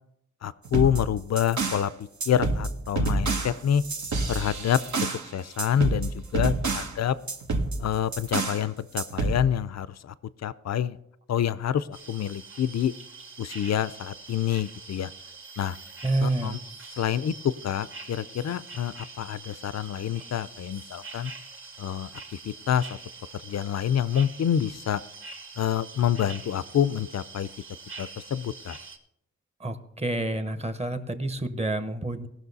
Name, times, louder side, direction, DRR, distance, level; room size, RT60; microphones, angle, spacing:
voice 1, 0.4-1.9 2.3-3.8 4.3-7.1 7.8-10.1 10.4-11.0 11.3-12.9 13.4-15.1 15.6-15.8 16.2-16.6 17.0-21.3 21.8-22.9 23.3-25.0 25.6-27.5 28.0-28.8, left 9 dB, 65° left, 17 dB, 0.4 m, -27 dB
sound 1, 0.7-1.9 2.2-5.3 5.6-7.0 7.3-8.6 9.0-9.4, right 3 dB, 75° right, 1.2 m, -28 dB
sound 2, 11.9-29.0, right 4 dB, 45° right, 1.5 m, -44 dB
voice 2, 16.0-16.6 29.6-32.3, right 2 dB, 20° right, 10 dB, 0.9 m, -28 dB
18.0 x 6.2 x 4.0 m, 0.80 s
wide cardioid pair, 95°, 29 cm